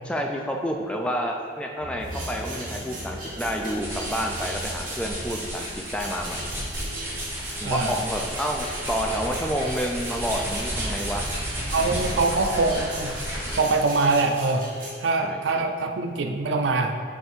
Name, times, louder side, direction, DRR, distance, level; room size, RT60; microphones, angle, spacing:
voice 1, 0.0-6.4 7.6-11.2 15.2-15.6, equal, 5° left, 1 dB, 0.3 m, -29 dB
sound 1, 1.8-8.1, equal, 70° left, 0.9 m, -40 dB
sound 2, 2.0-14.9, right 1 dB, 45° right, 1.2 m, -39 dB
sound 3, 3.4-13.8, equal, 15° right, 0.9 m, -32 dB
voice 2, 7.6-8.0 11.7-13.1 13.6-14.7 15.0-17.0, right 3 dB, 75° right, 5 dB, 0.4 m, -23 dB
6.5 x 3.4 x 4.3 m, 2.2 s
head